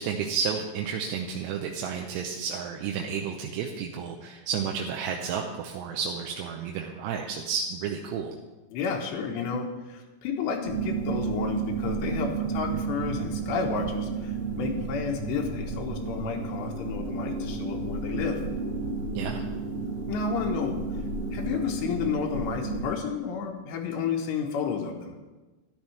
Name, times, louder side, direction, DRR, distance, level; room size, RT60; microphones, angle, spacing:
voice 1, 0.0-8.3 19.2-19.4, right 6 dB, 85° right, 1 dB, 2.8 m, -31 dB
voice 2, 8.7-18.4 20.1-20.8 21.3-25.2, left 6 dB, 85° left, 1 dB, 3.2 m, -31 dB
sound 1, 10.6-22.8, right 4 dB, 65° right, 2.8 m, -32 dB
13.5 x 10.5 x 3.2 m, 1.2 s
omnidirectional pair, 4.9 m